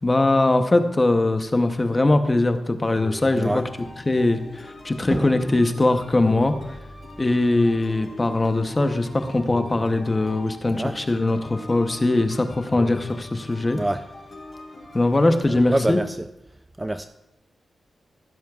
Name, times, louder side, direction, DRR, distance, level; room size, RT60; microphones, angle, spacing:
voice 1, 0.0-3.6 4.0-6.7 7.2-13.8 14.9-16.0, left 2 dB, 20° left, 7 dB, 0.8 m, -21 dB
sound 1, 3.0-15.9, left 1 dB, 45° left, 4.5 m, -40 dB
voice 2, 15.5-16.1 16.8-17.1, right 1 dB, 15° right, 9 dB, 0.3 m, -25 dB
15.5 x 12.5 x 2.4 m, 0.90 s
wide cardioid pair, 130°, 0 cm